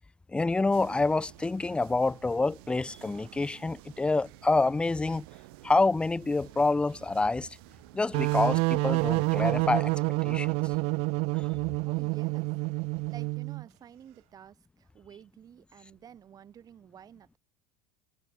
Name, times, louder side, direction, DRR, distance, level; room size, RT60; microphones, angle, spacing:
voice 1, 0.3-5.3 5.6-7.6 7.9-9.9 10.2-10.5 11.4-11.5, left 3 dB, 10° left, 0.6 m, -27 dB
sound 1, 0.7-9.5, right 25 dB, 75° right, 2.2 m, -52 dB
sound 2, 8.1-13.6, right 28 dB, 55° right, 0.4 m, -28 dB
voice 2, 11.8-12.5 13.1-17.4, right 9 dB, 30° right, 1.7 m, -51 dB
supercardioid pair, 135°, 12 cm